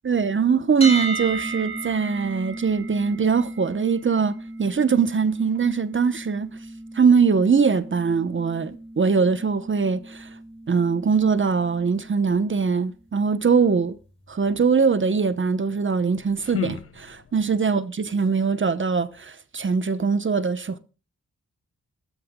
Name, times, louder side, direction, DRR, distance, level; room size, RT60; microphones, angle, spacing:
voice 1, 0.0-6.6 6.9-10.3 10.7-13.9 14.3-20.8, right 5 dB, 40° right, 1.0 m, -22 dB
sound 1, 0.8-12.7, right 2 dB, 20° left, 3.5 m, -36 dB
sound 2, 15.9-17.6, left 5 dB, 45° left, 0.9 m, -34 dB
19.0 x 13.0 x 2.3 m
wide cardioid pair, 120°, 32 cm